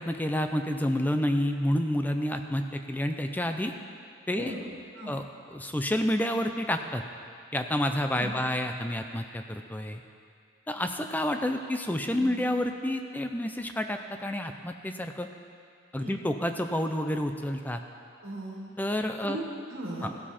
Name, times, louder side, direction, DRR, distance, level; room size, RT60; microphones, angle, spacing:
voice 1, 0.0-3.7 4.3-4.5 5.1-5.2 5.5-7.0 7.5-10.0 10.7-15.3 15.9-17.8 18.8-19.4 20.0-20.1, left 1 dB, 10° left, 6 dB, 0.5 m, -29 dB
voice 2, 18.2-18.7 19.2-20.1, right 1 dB, 85° right, -3 dB, 1.8 m, -37 dB
15.5 x 7.5 x 4.3 m, 2.3 s
head